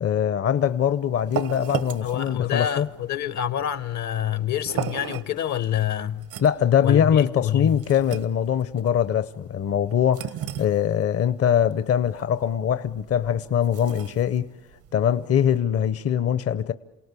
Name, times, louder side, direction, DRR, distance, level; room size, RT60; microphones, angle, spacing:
voice 1, 0.0-2.9 6.4-10.3 10.6-14.5 14.9-16.7, left 9 dB, 50° left, 0.7 m, -22 dB
sound 1, 0.6-15.6, right 9 dB, 85° right, 1.3 m, -37 dB
voice 2, 2.0-6.3 6.8-7.8 10.6-10.7, left 10 dB, 70° left, 1.0 m, -27 dB
28.0 x 18.0 x 8.3 m
cardioid pair, 90°, 30 cm